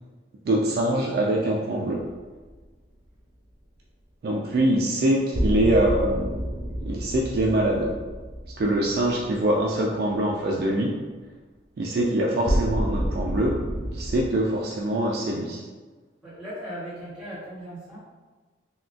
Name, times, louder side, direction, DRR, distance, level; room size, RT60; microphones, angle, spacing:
voice 1, 0.5-2.1 4.2-6.3 6.9-7.9 8.6-10.9 11.8-13.6 13.9-15.6, right 1 dB, 55° right, -1 dB, 0.3 m, -24 dB
sound 1, 2.0-2.5 5.3-9.6 12.5-14.3, equal, 85° right, 0.8 m, -29 dB
voice 2, 16.2-18.0, equal, 5° right, -12 dB, 1.2 m, -37 dB
3.6 x 2.2 x 2.4 m, 1.3 s
head